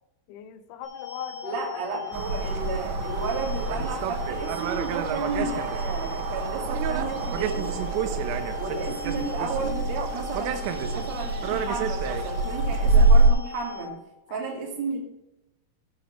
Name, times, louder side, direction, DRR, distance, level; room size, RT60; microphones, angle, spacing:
voice 1, 0.3-2.5 8.2-8.5 14.3-14.7, left 9 dB, 90° left, 10 dB, 3.5 m, -42 dB
sound 1, 0.8-13.8, left 7 dB, 15° left, 3.7 m, -39 dB
voice 2, 1.4-7.7 8.6-13.9 14.3-15.0, right 4 dB, 45° right, -1 dB, 2.5 m, -33 dB
sound 2, 2.1-13.3, right 3 dB, 90° right, 3.3 m, -25 dB
15.5 x 8.1 x 3.2 m, 0.95 s
omnidirectional pair, 5.9 m